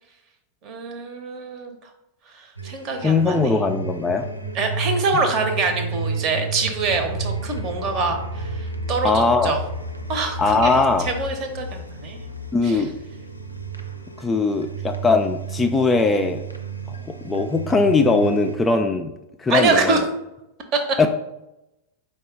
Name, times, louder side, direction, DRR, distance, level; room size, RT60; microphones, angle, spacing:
voice 1, 0.6-1.8 2.3-3.6 4.5-9.6 10.1-10.8 11.0-12.2 12.6-12.8 19.5-20.0 20.7-20.8, right 3 dB, 35° right, 5 dB, 0.9 m, -25 dB
sound 1, 2.6-18.6, right 3 dB, 90° left, 0.5 m, -32 dB
voice 2, 3.0-4.3 9.0-9.6 10.4-11.1 12.5-12.9 14.2-16.4 17.1-19.1 19.4-20.0 21.0-21.1, left 3 dB, 15° left, 5 dB, 0.3 m, -20 dB
4.6 x 2.3 x 4.6 m, 0.90 s
figure-of-eight pair, 90°, 0 cm